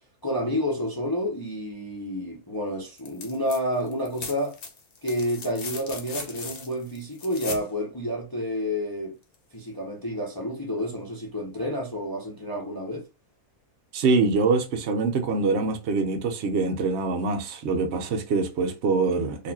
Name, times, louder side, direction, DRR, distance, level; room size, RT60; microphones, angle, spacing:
voice 1, 0.2-4.6 5.0-9.2 9.5-13.1, equal, 25° left, 0.5 m, -29 dB
sound 1, 3.0-3.6 3.9-7.7 9.3-9.4, left 4 dB, 50° left, 0.9 m, -38 dB
voice 2, 13.9-19.5, right 4 dB, 55° right, 0.9 m, -24 dB
4.1 x 2.6 x 2.8 m
omnidirectional pair, 1.6 m